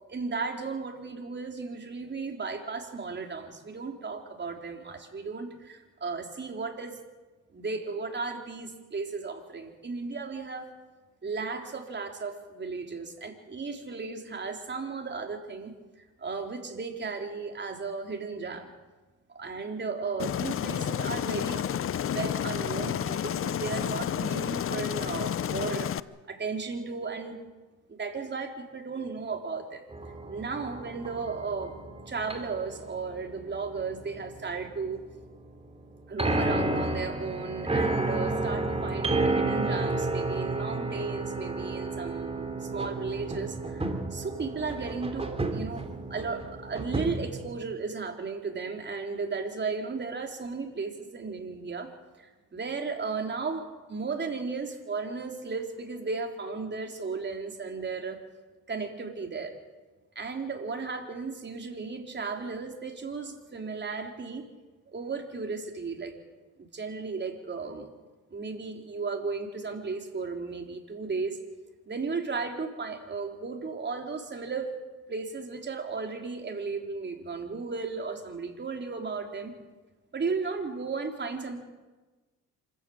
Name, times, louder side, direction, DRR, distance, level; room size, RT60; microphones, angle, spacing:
voice 1, 0.0-7.0 7.5-10.7 11.2-15.7 16.2-18.7 19.3-21.6 22.0-25.9 26.3-27.4 27.9-29.8 30.3-31.8 32.1-35.0 36.1-51.9 52.2-58.2 58.7-59.5 60.2-64.5 64.9-66.1 66.6-67.9 68.3-71.4 71.9-74.7 75.1-79.6 80.1-81.6, right 4 dB, 35° right, 3 dB, 3.7 m, -35 dB
Aircraft, 20.2-26.0, left 9 dB, 45° left, 0.7 m, -30 dB
sound 1, 29.9-47.5, right 2 dB, 20° right, 2.9 m, -32 dB
26.5 x 14.5 x 8.7 m, 1.2 s
cardioid pair, 90°, 30 cm